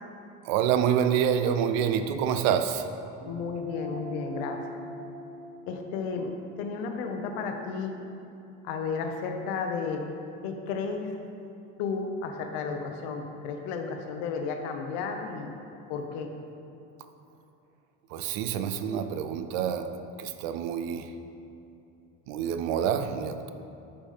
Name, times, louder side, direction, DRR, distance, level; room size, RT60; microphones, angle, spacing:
voice 1, 0.4-2.9 18.1-21.1 22.3-23.5, right 8 dB, 70° right, 9 dB, 0.6 m, -27 dB
voice 2, 3.2-4.6 5.7-6.3 6.6-7.9 8.6-10.0 10.4-11.1 11.8-15.5 15.9-16.3, left 5 dB, 65° left, 4 dB, 0.9 m, -33 dB
sound 1, 3.2-8.0, left 2 dB, 40° right, 0.9 m, -42 dB
6.9 x 5.1 x 5.5 m, 2.8 s
cardioid pair, 180°, 33 cm